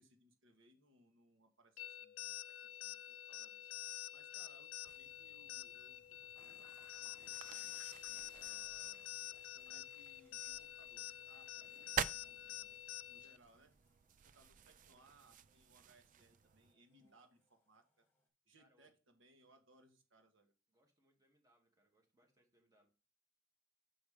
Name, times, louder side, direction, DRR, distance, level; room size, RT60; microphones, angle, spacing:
voice 1, 0.0-7.8 8.3-9.2 9.5-11.8 12.1-12.8 13.1-13.7 14.2-18.1 18.4-20.5, right 1 dB, 70° right, 5 dB, 1.5 m, -69 dB
sound 1, 1.8-13.4, left 12 dB, 80° left, 0.4 m, -48 dB
sound 2, 4.8-16.7, right 8 dB, 40° right, 0.4 m, -49 dB
sound 3, 6.3-18.3, left 2 dB, 10° left, 2.0 m, -71 dB
voice 2, 12.2-13.1 17.0-17.2 18.6-18.9 20.7-22.9, right 1 dB, 20° right, 1 dB, 2.2 m, -76 dB
6.2 x 5.1 x 4.9 m, 0.34 s
head